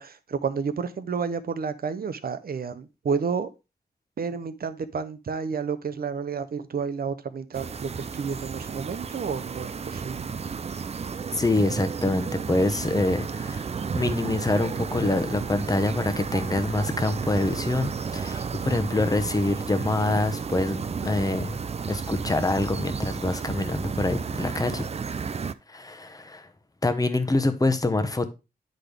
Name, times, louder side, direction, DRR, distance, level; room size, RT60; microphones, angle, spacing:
voice 1, 0.0-3.5 4.2-10.3 18.4-18.8 24.6-25.1, right 5 dB, 65° right, 0.7 m, -31 dB
sound 1, 7.5-25.5, right 5 dB, 40° right, 0.4 m, -32 dB
voice 2, 11.4-21.6 21.9-24.9 25.7-26.5 26.8-28.3, left 2 dB, 20° left, 0.9 m, -26 dB
9.7 x 4.0 x 3.4 m
wide cardioid pair, 80°, 17 cm